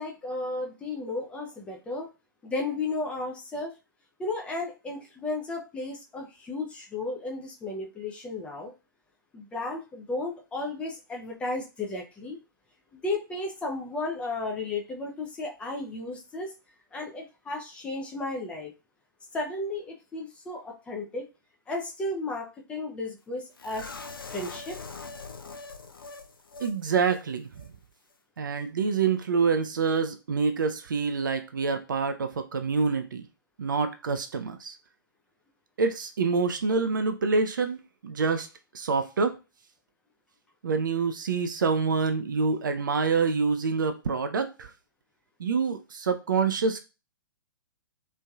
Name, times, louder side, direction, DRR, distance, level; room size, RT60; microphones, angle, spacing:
voice 1, 0.0-2.1 2.4-3.7 4.2-8.7 9.3-12.4 12.9-16.5 16.9-18.7 19.3-21.2 21.7-23.9 24.3-24.8, left 2 dB, 10° left, 0 dB, 0.4 m, -34 dB
synth growl thing, 23.6-26.8 27.0-27.2 27.6-27.7, left 4 dB, 75° left, 0.4 m, -42 dB
voice 2, 26.6-27.5 28.4-33.2 33.6-34.7 35.8-38.5 38.7-39.4 40.6-44.7 45.4-46.8, right 5 dB, 60° right, 8 dB, 0.4 m, -26 dB
3.1 x 2.5 x 2.3 m, 0.29 s
figure-of-eight pair, 115°, 12 cm